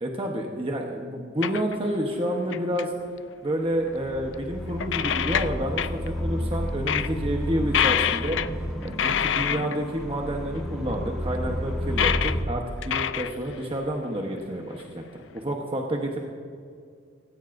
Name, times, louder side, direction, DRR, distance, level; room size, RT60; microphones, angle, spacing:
voice 1, 0.0-2.9 3.4-8.4 8.8-15.0 15.3-16.2, right 1 dB, 30° right, 1 dB, 1.0 m, -29 dB
sound 1, 1.4-2.0 2.3-2.8 3.9-4.0 4.3-4.4 4.8-6.1 6.5-6.6 6.9-7.1 7.7-8.5 8.8-9.8 10.9-11.0 11.9-12.4 12.8-13.8 14.4-14.5 15.4-15.5, left 9 dB, 85° left, 0.4 m, -26 dB
sound 2, 3.7-12.4, equal, ahead, 1.7 m, -31 dB
17.5 x 16.0 x 2.6 m, 2.2 s
head